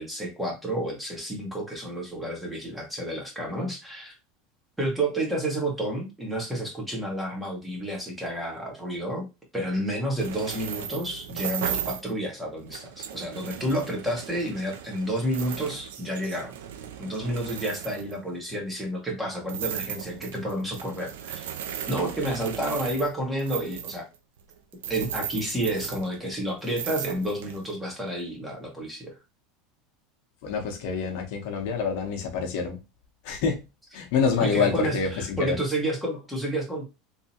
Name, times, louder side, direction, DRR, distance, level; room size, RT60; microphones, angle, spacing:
voice 1, 0.0-4.1 4.8-9.3 9.5-16.5 17.0-21.5 21.9-24.0 24.9-29.2 34.4-36.8, right 1 dB, 5° right, 1.6 m, -30 dB
sound 1, 10.2-12.1 12.5-18.6 19.5-26.4 26.6-27.7, right 9 dB, 90° right, 0.5 m, -36 dB
voice 2, 30.4-32.8 33.2-33.6 33.9-35.6, left 5 dB, 65° left, 1.0 m, -26 dB
3.6 x 2.9 x 2.9 m
supercardioid pair, 125°, 0 cm